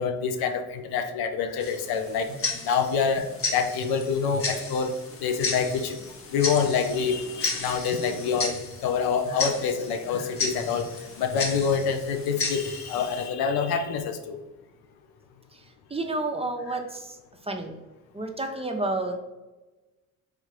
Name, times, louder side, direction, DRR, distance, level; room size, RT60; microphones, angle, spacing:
voice 1, 0.0-2.3 2.6-6.0 6.3-10.9 11.2-14.4, left 6 dB, 70° left, 7 dB, 0.6 m, -26 dB
Tick-tock, 1.6-13.3, left 3 dB, 35° left, 0.9 m, -34 dB
voice 2, 15.5-17.2 17.4-17.8 18.1-19.2, right 2 dB, 15° right, 4 dB, 0.6 m, -30 dB
3.6 x 3.3 x 3.1 m, 1.1 s
hypercardioid pair, 45°, 40 cm